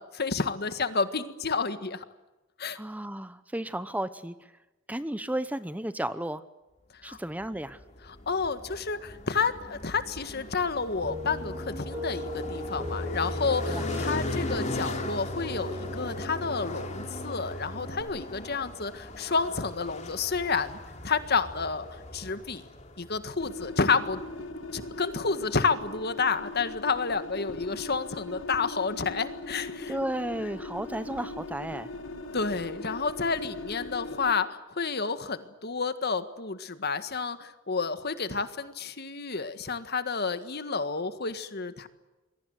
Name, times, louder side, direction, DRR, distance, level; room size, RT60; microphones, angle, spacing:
voice 1, 0.0-2.0 2.6-2.8 7.0-7.2 8.3-21.9 22.1-22.6 23.0-24.2 24.7-29.9 32.3-41.9, left 4 dB, 55° left, 11 dB, 1.7 m, -30 dB
voice 2, 2.7-4.5 4.9-6.4 7.0-7.8 13.7-14.2 29.9-31.9, right 1 dB, 10° right, 13 dB, 0.8 m, -33 dB
sound 1, 7.4-24.8, left 2 dB, 35° left, 3.1 m, -40 dB
sound 2, 11.0-18.0, left 1 dB, 25° right, 5.2 m, -36 dB
sound 3, 23.4-34.3, left 2 dB, 70° left, 2.5 m, -40 dB
27.5 x 22.5 x 8.0 m, 1.1 s
head